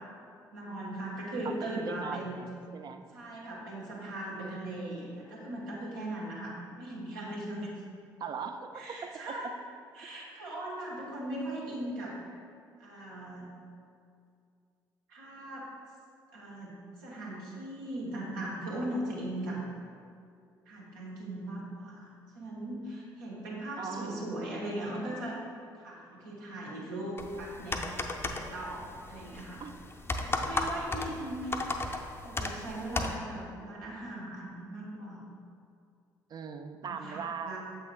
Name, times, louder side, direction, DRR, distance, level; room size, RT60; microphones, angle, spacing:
voice 1, 0.5-2.5 3.1-7.7 8.7-9.5 9.9-12.3 12.8-13.5 15.1-15.7 16.3-19.6 20.7-22.1 22.3-25.4 25.8-27.8 28.3-29.6 30.2-31.5 32.2-35.2 36.9-37.6, right 1 dB, 75° right, -5 dB, 1.1 m, -39 dB
voice 2, 1.4-3.0 8.2-9.0 9.3-9.4 23.8-24.5 29.6-29.7 31.2-31.3 36.3-37.6, right 6 dB, 40° right, 8 dB, 0.4 m, -40 dB
sound 1, 27.2-33.2, left 2 dB, 20° left, 0.5 m, -35 dB
7.6 x 6.0 x 2.3 m, 2.4 s
figure-of-eight pair, 45°, 11 cm